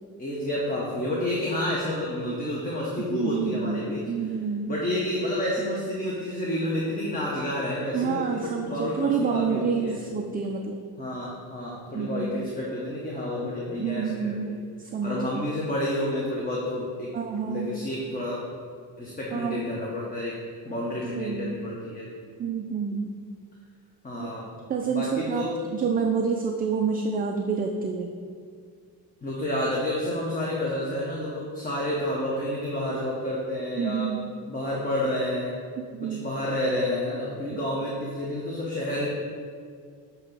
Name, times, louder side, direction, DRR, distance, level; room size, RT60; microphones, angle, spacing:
voice 1, 0.2-4.0 4.7-10.0 11.0-14.6 15.0-17.1 17.5-18.4 19.0-20.3 20.6-22.1 24.0-24.5 24.9-25.5 29.2-34.1 34.5-35.5 36.1-39.1, left 1 dB, 20° left, -5 dB, 1.2 m, -29 dB
voice 2, 3.1-3.8 4.1-4.7 7.9-10.8 11.9-12.3 13.8-14.6 14.9-15.2 17.1-17.8 19.3-19.6 21.2-21.6 22.4-23.2 24.2-24.3 24.7-25.5 25.7-28.1 33.8-34.3 35.8-36.3, right 6 dB, 25° right, 2 dB, 0.4 m, -28 dB
9.1 x 3.1 x 5.5 m, 2.1 s
cardioid pair, 110°, 40 cm